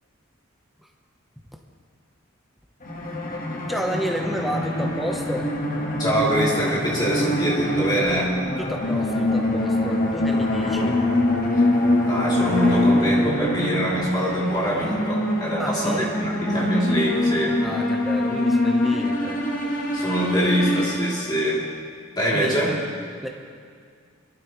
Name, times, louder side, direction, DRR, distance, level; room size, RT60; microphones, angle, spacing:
sound 1, 2.8-21.6, left 1 dB, 40° left, 1.3 m, -24 dB
voice 1, 3.7-5.5 8.6-11.0 15.6-16.1 17.6-19.4 22.3-22.9 23.2-23.3, equal, ahead, 1 dB, 0.8 m, -31 dB
voice 2, 6.0-8.4 11.5-11.6 12.0-17.6 19.9-21.6 22.2-22.8, equal, 20° left, -6 dB, 2.8 m, -24 dB
23.5 x 12.0 x 3.0 m, 2.2 s
head